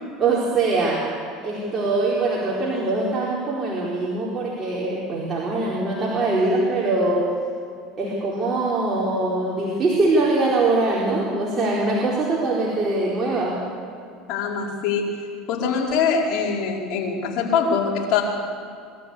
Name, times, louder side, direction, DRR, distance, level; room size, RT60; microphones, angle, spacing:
voice 1, 0.2-7.4 8.0-13.7, right 2 dB, 30° right, -5 dB, 4.4 m, -23 dB
voice 2, 14.3-15.0 15.5-18.2, left 6 dB, 60° left, -3 dB, 4.8 m, -23 dB
22.5 x 13.5 x 8.5 m, 2.4 s
hypercardioid pair, 90°, 0 cm